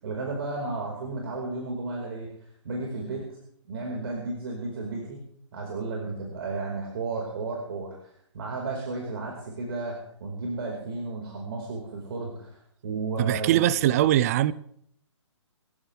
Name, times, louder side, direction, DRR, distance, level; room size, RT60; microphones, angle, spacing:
voice 1, 0.0-2.3 2.6-3.2 3.7-5.2 5.5-13.6, right 3 dB, 50° right, 4.9 m, -33 dB
voice 2, 13.2-14.5, right 13 dB, 30° right, 0.6 m, -22 dB
26.0 x 14.5 x 3.5 m
figure-of-eight pair, 135°, 16 cm